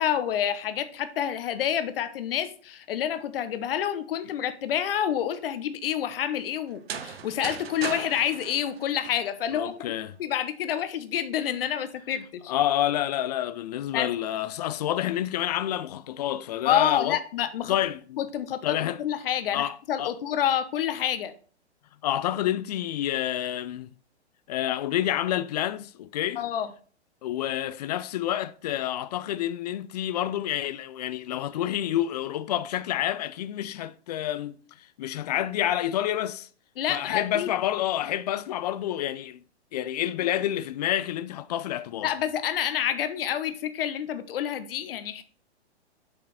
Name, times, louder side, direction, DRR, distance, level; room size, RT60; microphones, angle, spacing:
voice 1, 0.0-9.7 10.2-12.5 13.9-14.1 16.6-17.7 18.2-21.3 26.4-26.7 36.8-37.5 42.0-45.2, left 10 dB, 55° left, 1.1 m, -28 dB
sound 1, 6.7-9.6, right 7 dB, 60° right, 1.1 m, -38 dB
voice 2, 9.5-10.1 12.5-17.2 17.7-18.2 18.6-19.0 19.5-20.2 22.0-23.9 24.5-26.4 27.2-36.5 36.9-39.4 39.7-42.1, left 12 dB, 35° left, 0.4 m, -28 dB
7.6 x 5.1 x 4.2 m
hypercardioid pair, 120°, 34 cm